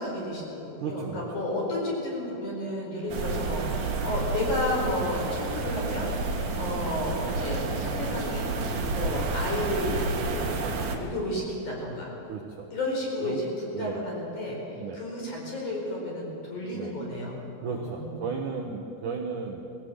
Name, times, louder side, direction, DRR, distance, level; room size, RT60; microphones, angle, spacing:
voice 1, 0.0-8.5 8.9-10.6 10.9-12.1 12.7-14.6 14.9-17.4 17.7-18.2, left 1 dB, 40° left, -2 dB, 5.7 m, -32 dB
voice 2, 0.8-1.2 3.2-3.4 6.5-6.8 12.2-12.7 13.2-13.4 13.7-14.0 14.7-15.0 16.7-16.9 17.6-19.6, right 5 dB, 90° right, 1 dB, 1.7 m, -35 dB
sound 1, 3.1-11.0, right 3 dB, 55° right, 2.1 m, -30 dB
20.0 x 17.0 x 7.8 m, 2.9 s
omnidirectional pair, 5.6 m